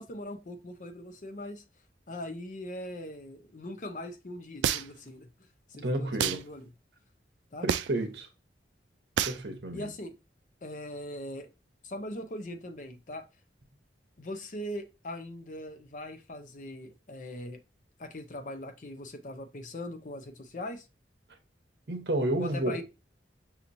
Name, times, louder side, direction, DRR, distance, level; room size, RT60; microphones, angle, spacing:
voice 1, 0.0-1.6 2.1-5.3 5.7-6.7 7.5-7.7 9.7-10.1 10.6-11.5 11.8-13.3 14.2-17.6 18.0-20.9 22.4-22.8, left 1 dB, 45° left, 0.6 m, -40 dB
sound 1, 4.6-5.1 6.2-6.4 7.7-8.0 9.2-9.4, right 9 dB, 90° right, 0.3 m, -28 dB
voice 2, 5.8-6.4 7.6-8.3 9.3-9.9 21.9-22.8, right 1 dB, 70° right, 0.9 m, -31 dB
5.6 x 2.9 x 2.6 m
head